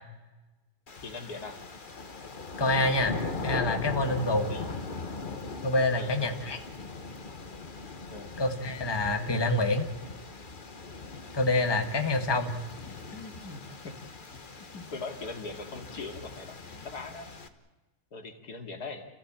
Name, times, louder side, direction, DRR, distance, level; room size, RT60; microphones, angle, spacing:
sound 1, 0.9-17.5, left 3 dB, 35° left, 1.4 m, -40 dB
voice 1, 1.0-1.6 4.5-4.7 6.0-6.2 8.1-8.3 13.1-14.0 14.7-17.3 18.1-19.1, left 3 dB, 85° left, 4 dB, 2.9 m, -41 dB
voice 2, 2.6-3.2 3.4-4.5 5.6-6.6 8.4-9.9 11.3-12.5, left 2 dB, 15° left, 5 dB, 1.6 m, -26 dB
30.0 x 15.5 x 8.8 m, 1.1 s
omnidirectional pair, 1.6 m